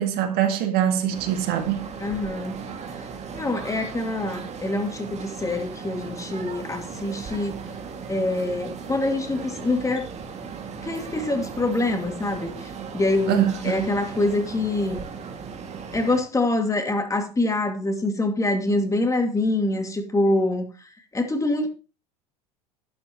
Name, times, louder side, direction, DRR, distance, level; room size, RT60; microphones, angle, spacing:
voice 1, 0.0-1.9 13.3-13.9, right 10 dB, 50° right, 1.9 m, -24 dB
sound 1, 1.1-16.2, right 5 dB, 35° right, 2.2 m, -37 dB
voice 2, 2.0-2.5 3.3-7.6 8.1-10.1 10.8-15.0 15.9-21.7, left 2 dB, 15° left, 2.4 m, -25 dB
12.5 x 9.6 x 3.0 m
hypercardioid pair, 80°, 20 cm